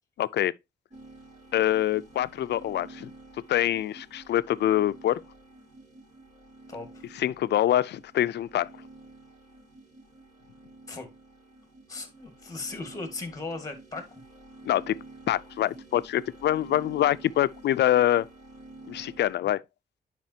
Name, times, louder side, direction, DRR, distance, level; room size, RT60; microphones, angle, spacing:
voice 1, 0.2-0.5 1.5-3.1 3.5-5.2 7.2-8.7 14.7-15.0 15.3-18.3 18.9-19.6, left 12 dB, 80° left, 0.4 m, -25 dB
sound 1, 0.9-19.3, right 2 dB, 45° right, 3.0 m, -49 dB
voice 2, 6.7-7.0 10.9-11.1 11.9-14.2, left 3 dB, 20° left, 1.8 m, -37 dB
10.5 x 4.9 x 2.7 m
wide cardioid pair, 170°, 17 cm